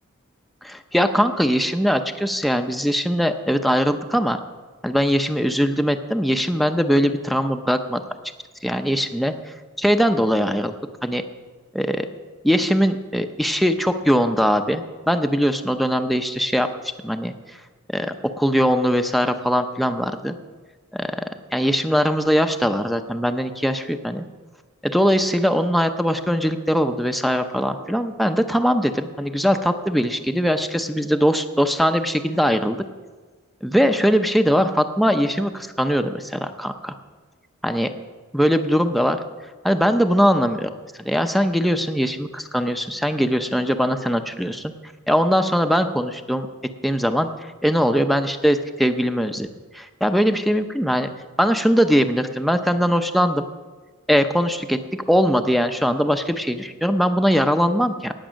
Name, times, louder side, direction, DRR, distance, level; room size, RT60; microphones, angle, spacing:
voice 1, 0.6-4.4 4.8-8.0 8.6-9.3 9.8-10.7 11.0-11.2 11.7-12.1 12.4-16.7 17.0-17.3 17.9-20.3 20.9-21.2 21.5-24.2 24.8-32.8 33.6-36.9 37.6-37.9 38.3-39.2 39.6-40.7 41.0-44.7 45.1-46.5 46.8-47.3 47.6-49.5 49.7-51.1 51.4-53.4 54.1-58.1, equal, ahead, 6 dB, 0.6 m, -21 dB
18.0 x 8.1 x 6.3 m, 1.4 s
head